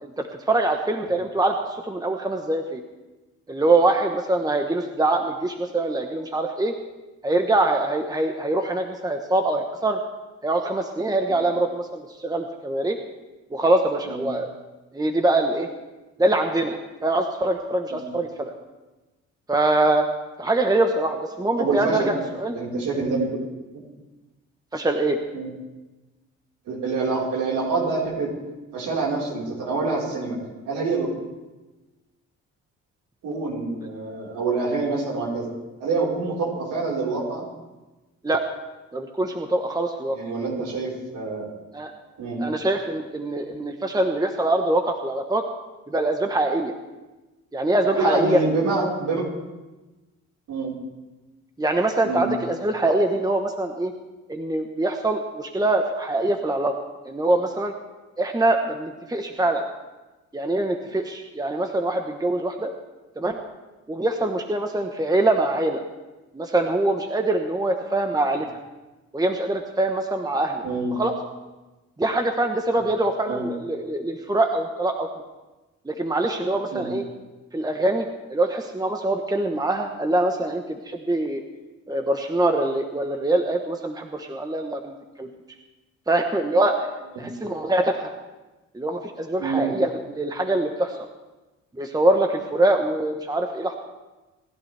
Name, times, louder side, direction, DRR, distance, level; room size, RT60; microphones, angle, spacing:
voice 1, 0.0-2.8 3.5-6.7 7.2-10.0 10.4-13.0 13.5-14.5 14.9-15.7 16.2-18.5 19.5-20.1 20.4-22.6 24.7-25.2 38.2-38.4 38.9-40.2 41.7-41.9 42.4-45.4 45.9-46.7 47.5-48.4 51.6-53.9 54.3-56.7 57.0-57.7 58.2-59.6 60.3-62.7 63.2-63.4 63.9-65.8 66.3-68.5 69.1-70.6 70.9-71.1 72.0-75.1 75.8-77.0 77.5-81.4 81.9-85.3 86.1-86.9 87.2-88.1 88.7-91.0 91.7-93.7, right 2 dB, 10° right, 4 dB, 1.1 m, -23 dB
voice 2, 21.6-22.1 22.5-23.4 23.7-23.8 25.3-25.5 26.7-28.3 28.7-30.4 30.7-31.1 33.2-35.5 35.8-37.4 40.1-41.5 42.2-42.4 48.0-49.3 50.5-50.7 52.0-52.2 70.6-70.9 73.3-73.4 76.7-76.9 87.2-87.3 89.4-89.7, right 3 dB, 80° right, -3 dB, 4.6 m, -26 dB
27.5 x 11.5 x 3.4 m, 1.1 s
cardioid pair, 90°, 30 cm